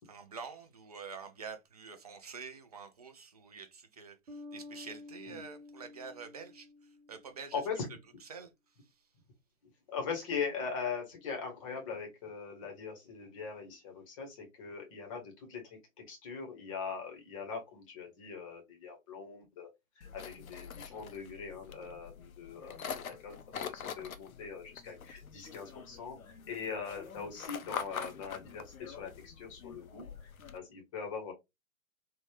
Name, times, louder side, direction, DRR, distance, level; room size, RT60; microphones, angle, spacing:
voice 1, 0.0-6.7 7.1-7.6 8.2-8.5, right 5 dB, 30° right, 0.4 m, -47 dB
sound 1, 4.3-7.6, left 2 dB, 80° right, 1.0 m, -50 dB
voice 2, 7.5-7.9 9.9-19.7 20.0-31.3, left 5 dB, 25° left, 0.7 m, -41 dB
sound 2, 20.0-30.6, left 7 dB, 85° left, 0.5 m, -45 dB
3.5 x 2.0 x 2.8 m
figure-of-eight pair, 120°, 41 cm